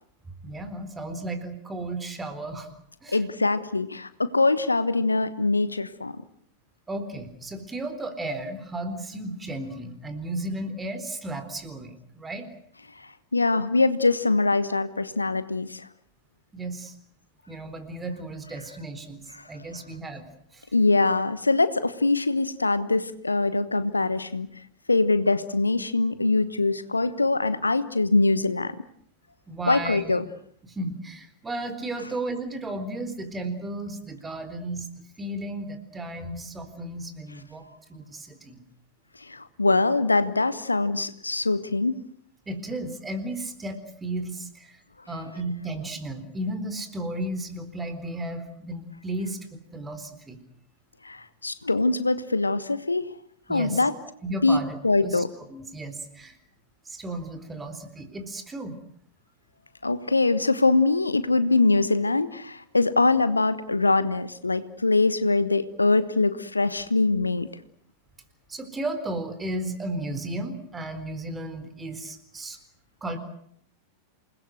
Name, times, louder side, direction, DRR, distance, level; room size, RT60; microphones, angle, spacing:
voice 1, 0.4-2.7 3.0-3.2 6.9-12.5 16.5-16.9 17.5-20.2 20.5-20.6 29.5-30.1 30.7-34.9 35.2-37.6 37.9-38.6 42.5-44.8 45.1-50.4 53.5-53.8 54.2-54.8 55.0-55.2 55.5-56.3 56.9-58.8 68.5-72.6 73.0-73.2, right 1 dB, 15° right, 9 dB, 4.2 m, -34 dB
voice 2, 3.1-6.1 13.3-15.9 19.3-19.4 20.7-24.5 24.9-28.7 29.7-30.2 39.3-42.0 51.0-53.1 53.5-53.9 54.4-55.3 59.8-67.5, left 3 dB, 80° left, 14 dB, 1.2 m, -23 dB
28.0 x 20.5 x 8.0 m, 0.65 s
figure-of-eight pair, 90°, 0 cm